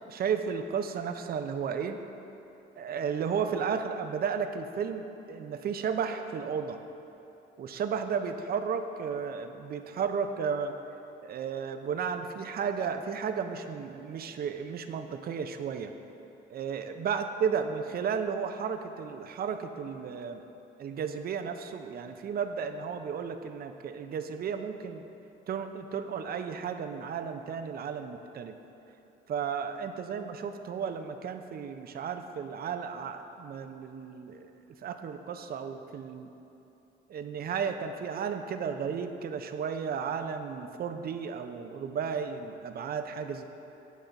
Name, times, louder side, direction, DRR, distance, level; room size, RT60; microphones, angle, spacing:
voice 1, 0.1-2.0 2.8-6.8 7.6-10.7 11.2-15.9 16.5-20.4 20.8-25.0 25.5-28.5 29.3-34.5 34.8-36.3 37.1-43.4, right 6 dB, 50° right, 7 dB, 0.5 m, -33 dB
9.2 x 3.8 x 5.3 m, 2.9 s
cardioid pair, 90°, 20 cm